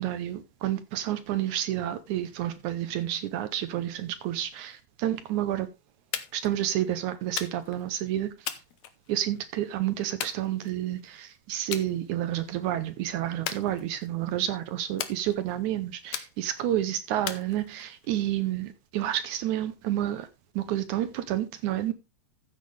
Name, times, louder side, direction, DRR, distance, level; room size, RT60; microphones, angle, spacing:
voice 1, 0.0-5.7 6.3-8.6 9.1-20.3 20.6-21.9, right 12 dB, 80° right, 2.1 m, -30 dB
sound 1, 6.1-6.5 7.4-7.8 8.5-9.4 10.2-11.0 11.7-11.9 12.3-12.7 13.5-14.2 15.0-15.6 16.1-16.7 17.3-18.1, left 11 dB, 70° left, 2.1 m, -37 dB
14.0 x 7.7 x 3.3 m
omnidirectional pair, 3.6 m